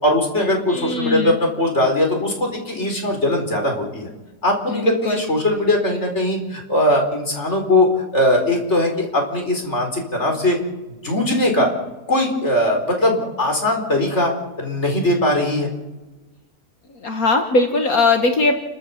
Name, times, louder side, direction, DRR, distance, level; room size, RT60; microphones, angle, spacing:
voice 1, 0.0-4.1 4.4-7.9 8.1-10.6 11.0-11.7 12.1-14.3 14.6-15.7, left 1 dB, 40° left, 2 dB, 4.8 m, -20 dB
voice 2, 0.7-1.4 4.7-5.2 16.9-18.5, left 3 dB, 60° left, 5 dB, 2.0 m, -20 dB
30.0 x 13.5 x 7.2 m, 1.1 s
omnidirectional pair, 1.8 m